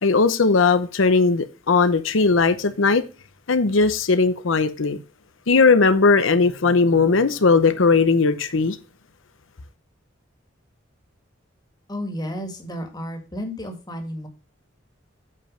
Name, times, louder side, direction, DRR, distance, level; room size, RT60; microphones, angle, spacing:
voice 1, 0.0-3.0 3.5-5.0 5.5-8.8, left 4 dB, 90° left, 0.8 m, -18 dB
voice 2, 11.9-14.3, equal, 20° left, 1.8 m, -32 dB
8.4 x 5.3 x 5.0 m
head